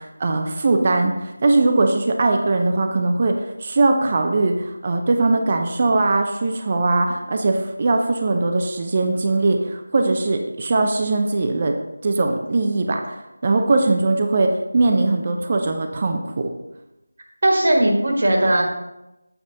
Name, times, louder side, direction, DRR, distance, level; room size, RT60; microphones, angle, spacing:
voice 1, 0.0-11.7 12.0-13.2 13.4-16.5, right 2 dB, 30° right, 4 dB, 0.5 m, -20 dB
voice 2, 17.4-18.7, right 1 dB, 50° right, 1 dB, 1.5 m, -17 dB
8.4 x 5.0 x 3.9 m, 0.93 s
figure-of-eight pair, 175°, 0 cm